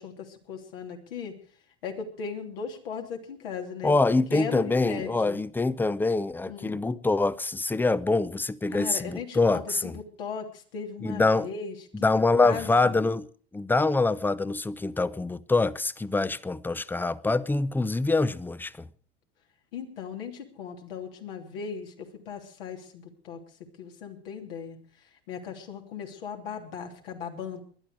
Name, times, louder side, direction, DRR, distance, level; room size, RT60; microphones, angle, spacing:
voice 1, 0.0-1.3 1.8-4.0 4.3-5.4 6.5-6.8 8.7-12.1 12.4-12.9 19.7-23.4 23.8-24.8 25.3-27.6, left 6 dB, 75° left, 3.1 m, -37 dB
voice 2, 3.8-9.9 11.0-11.5 11.9-13.3 13.5-18.7, left 3 dB, 5° left, 0.6 m, -25 dB
20.5 x 11.5 x 4.8 m
hypercardioid pair, 85°, 29 cm